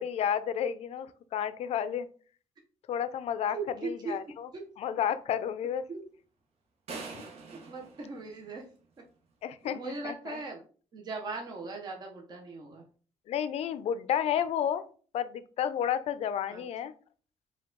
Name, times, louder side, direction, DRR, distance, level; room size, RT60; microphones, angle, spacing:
voice 1, 0.0-2.1 2.9-3.6 3.8-4.5 4.8-5.8 7.1-7.2 9.4-10.4 13.3-14.8 15.1-16.9, left 9 dB, 65° left, 13 dB, 0.4 m, -31 dB
voice 2, 3.5-4.2 4.5-4.7 5.9-6.0 7.7-8.6 9.6-10.6 10.9-12.8 16.5-16.6, right 3 dB, 35° right, 1 dB, 0.7 m, -39 dB
sound 1, 6.9-9.0, right 4 dB, 60° right, 0.9 m, -44 dB
4.5 x 2.3 x 3.7 m, 0.41 s
cardioid pair, 145°, 12 cm